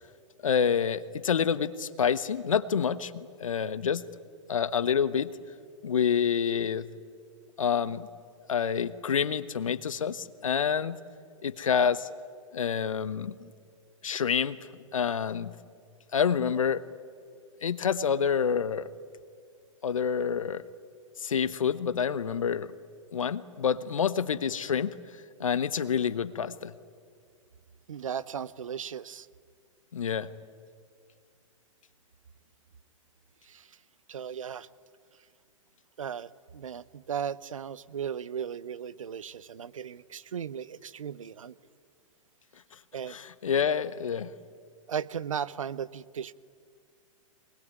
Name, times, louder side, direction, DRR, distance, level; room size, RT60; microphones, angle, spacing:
voice 1, 0.4-4.0 4.5-5.3 5.8-6.9 7.6-8.1 8.5-11.0 11.4-12.1 12.5-13.5 14.0-14.6 14.9-15.5 16.1-16.8 17.6-18.9 19.8-20.6 21.2-22.7 23.1-25.0 25.4-26.7 29.9-30.3 43.1-44.3, left 7 dB, 75° left, 15 dB, 1.2 m, -27 dB
voice 2, 27.9-29.3 33.4-33.8 34.1-34.7 36.0-41.5 42.9-43.2 44.9-46.3, right 8 dB, 75° right, 18 dB, 0.8 m, -36 dB
24.0 x 20.5 x 9.6 m, 2.2 s
figure-of-eight pair, 110°, 17 cm